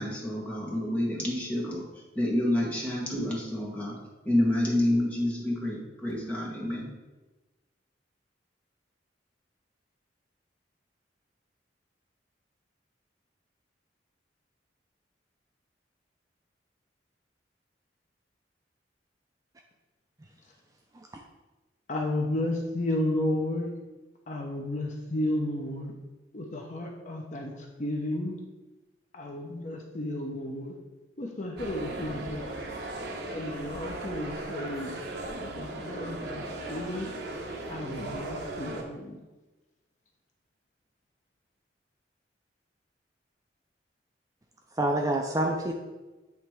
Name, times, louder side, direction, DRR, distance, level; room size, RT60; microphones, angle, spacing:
voice 1, 0.0-1.9 2.1-4.0 4.2-6.9, left 1 dB, 10° left, -4 dB, 1.5 m, -28 dB
voice 2, 21.9-23.7 24.3-25.9 26.3-28.4 29.1-30.8 31.2-32.5 33.3-34.9 35.4-37.1 37.7-39.2, left 1 dB, 45° left, 1 dB, 0.7 m, -32 dB
sound 1, 31.6-38.8, right 2 dB, 65° right, 0.9 m, -37 dB
voice 3, 44.8-45.7, right 1 dB, 20° right, 2 dB, 0.4 m, -27 dB
8.4 x 3.2 x 4.6 m, 1.1 s
head